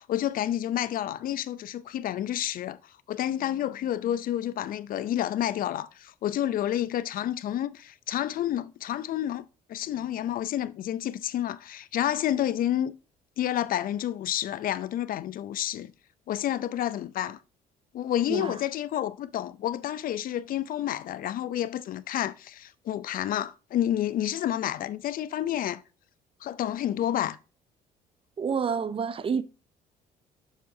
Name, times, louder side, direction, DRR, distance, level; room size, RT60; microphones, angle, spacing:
voice 1, 0.0-2.8 3.1-12.9 13.4-15.9 16.3-17.4 17.9-25.8 26.4-27.4, left 11 dB, 55° left, 0.5 m, -29 dB
voice 2, 28.4-29.4, right 6 dB, 30° right, 0.5 m, -28 dB
7.3 x 6.1 x 2.7 m
cardioid pair, 110°, 17 cm